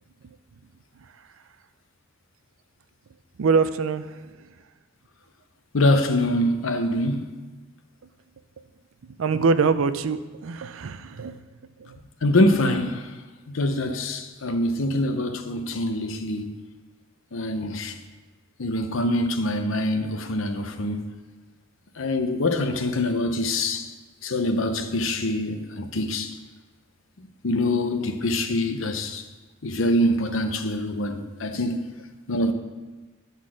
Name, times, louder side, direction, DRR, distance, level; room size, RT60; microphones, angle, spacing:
voice 1, 3.4-4.5 9.2-11.4 11.8-12.0 31.5-31.6, right 5 dB, 85° right, 0.5 m, -24 dB
voice 2, 5.7-7.3 12.2-13.1 13.5-16.5 17.3-17.9 18.6-21.1 22.0-23.9 24.2-26.3 27.4-29.2 29.6-31.8 32.3-32.5, left 1 dB, 75° left, 0.8 m, -24 dB
10.5 x 4.1 x 6.1 m
head